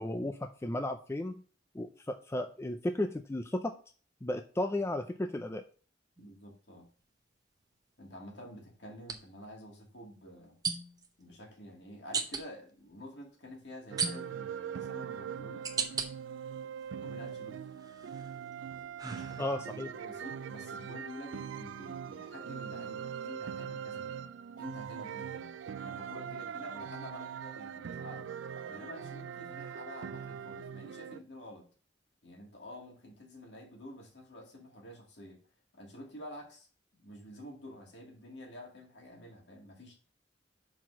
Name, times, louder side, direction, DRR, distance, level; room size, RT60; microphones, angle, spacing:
voice 1, 0.0-1.4 1.7-3.7 4.2-5.6 19.4-19.9, left 1 dB, 15° left, 7 dB, 0.4 m, -34 dB
voice 2, 6.2-6.9 8.0-10.6 11.2-15.7 17.0-17.6 19.0-24.3 24.6-25.5 25.8-28.3 28.7-31.7 32.2-35.4 35.7-36.7 37.0-39.9, left 1 dB, 65° left, 0 dB, 2.3 m, -49 dB
sound 1, 6.2-6.4 9.0-9.2 10.6-11.1 12.1-12.4 14.0-14.5 15.1-16.1 16.6-17.3 17.8-19.8, right 5 dB, 20° right, 0.8 m, -36 dB
sound 2, 13.9-31.2, right 7 dB, 90° right, 0.4 m, -42 dB
6.0 x 4.7 x 5.7 m, 0.41 s
head